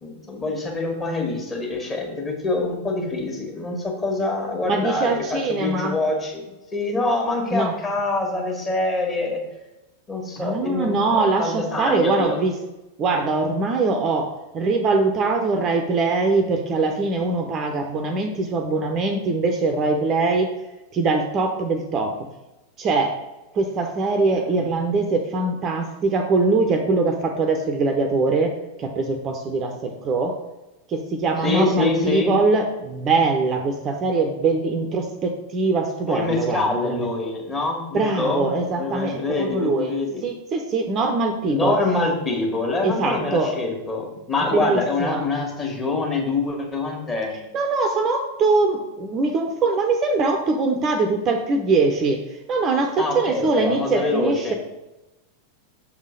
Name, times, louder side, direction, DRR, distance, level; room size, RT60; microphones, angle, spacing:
voice 1, 0.0-6.4 6.7-9.4 10.1-12.4 24.3-24.6 31.4-32.3 36.1-40.2 41.5-47.4 53.0-54.5, left 3 dB, 20° left, -1 dB, 1.7 m, -25 dB
voice 2, 4.6-5.9 7.5-7.7 10.4-12.5 13.0-20.5 20.9-22.1 22.8-23.1 23.5-28.5 28.8-30.4 30.9-37.1 37.9-39.9 40.2-41.8 42.8-43.5 44.5-45.2 47.5-52.2 52.5-54.5, right 3 dB, 30° right, 5 dB, 0.7 m, -22 dB
6.4 x 3.7 x 5.1 m, 1.0 s
figure-of-eight pair, 90°, 0 cm